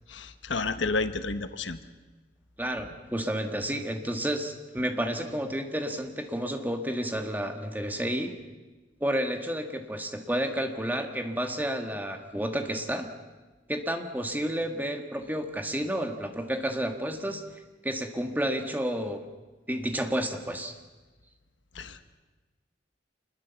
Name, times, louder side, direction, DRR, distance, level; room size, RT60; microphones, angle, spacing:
voice 1, 0.1-1.8 21.7-22.0, left 3 dB, 90° left, 10 dB, 1.3 m, -31 dB
voice 2, 2.6-8.3 9.0-13.1 13.7-17.4 17.8-19.3 19.7-20.8, equal, 10° right, 5 dB, 1.7 m, -31 dB
26.5 x 21.0 x 7.1 m, 1.3 s
head